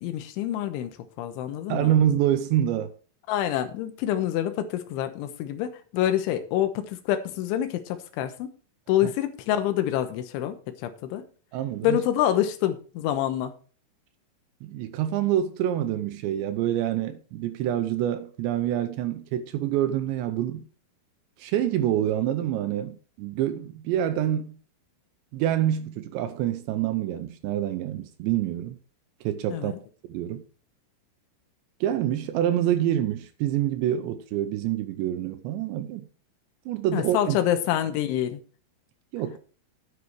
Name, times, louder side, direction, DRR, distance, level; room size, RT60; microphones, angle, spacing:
voice 1, 0.0-1.9 3.3-8.5 8.9-11.2 11.8-13.5 29.5-29.8 36.9-38.4, left 11 dB, 75° left, 3.3 m, -27 dB
voice 2, 1.7-2.9 9.0-9.1 11.5-12.0 14.6-20.6 21.4-24.6 25.3-28.8 29.2-29.7 30.1-30.4 31.8-36.0 36.7-37.4 39.1-39.4, right 11 dB, 80° right, 2.6 m, -26 dB
10.0 x 8.2 x 4.7 m
omnidirectional pair, 6.0 m